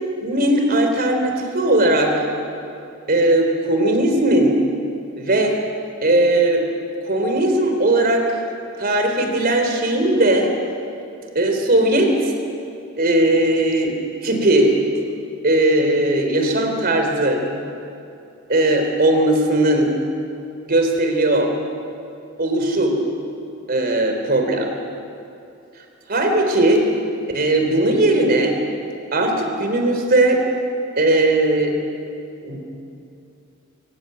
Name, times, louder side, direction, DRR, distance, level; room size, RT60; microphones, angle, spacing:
voice 1, 0.2-2.1 3.1-4.6 5.2-5.6 6.0-6.6 7.0-8.3 8.8-10.5 11.4-12.1 13.0-13.9 14.2-14.7 15.4-17.4 18.5-19.9 20.7-21.5 22.4-23.0 23.7-24.7 26.1-26.8 27.3-28.6 29.1-30.4 31.0-31.7 32.4-32.6, right 1 dB, 50° right, 3 dB, 3.6 m, -18 dB
23.5 x 16.0 x 9.6 m, 2.6 s
head